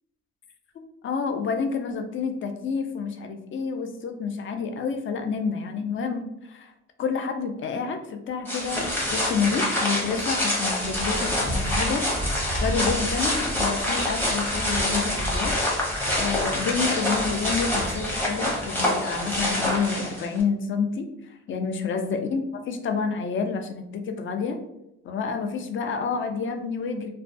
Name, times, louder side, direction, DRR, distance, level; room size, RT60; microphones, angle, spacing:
voice 1, 0.8-6.7 7.0-12.1 12.6-15.6 16.2-21.1 21.5-24.6 25.0-27.1, left 5 dB, 40° left, 6 dB, 0.4 m, -29 dB
sound 1, 8.5-20.4, left 1 dB, 5° left, 0.7 m, -26 dB
2.2 x 2.2 x 2.5 m, 0.85 s
cardioid pair, 90°, 30 cm